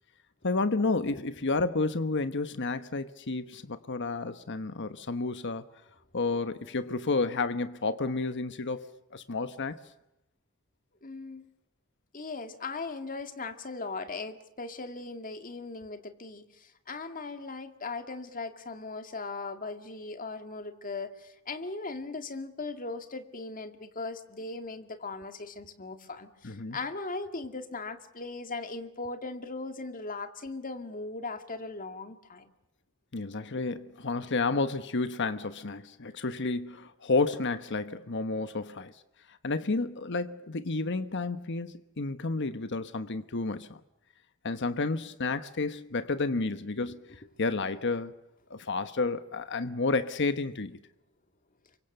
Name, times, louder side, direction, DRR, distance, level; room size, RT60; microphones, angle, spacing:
voice 1, 0.4-5.7 6.1-9.8 26.4-26.8 33.1-38.9 39.3-43.8 44.4-47.0 47.4-48.1 48.5-50.8, left 3 dB, 60° left, 1.2 m, -31 dB
voice 2, 11.0-11.5 12.1-32.5, left 3 dB, 40° left, 2.2 m, -38 dB
28.5 x 24.5 x 6.7 m
head